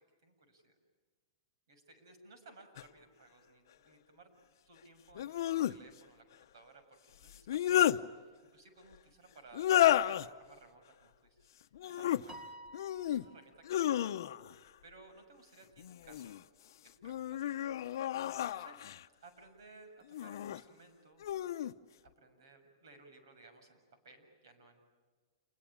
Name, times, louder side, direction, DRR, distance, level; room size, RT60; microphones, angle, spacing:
voice 1, 0.2-0.7 1.7-4.3 4.7-6.2 6.5-6.8 7.2-7.9 8.2-11.1 11.4-11.5 11.9-12.4 13.1-14.2 14.8-16.3 16.8-17.5 18.2-18.8 19.2-21.3 22.2-23.8 24.0-24.8, right 3 dB, 75° right, 7 dB, 7.0 m, -59 dB
sound 1, 2.8-2.9 5.1-5.8 7.3-8.0 9.5-10.3 11.7-12.2 12.7-13.2 13.6-14.5 15.8-16.4 17.0-19.0 20.1-20.6 21.2-21.7, left 12 dB, 60° left, 0.8 m, -31 dB
Piano, 12.3-13.8, right 1 dB, 15° right, 1.0 m, -52 dB
28.0 x 22.0 x 8.8 m, 1.5 s
supercardioid pair, 170°, 2 cm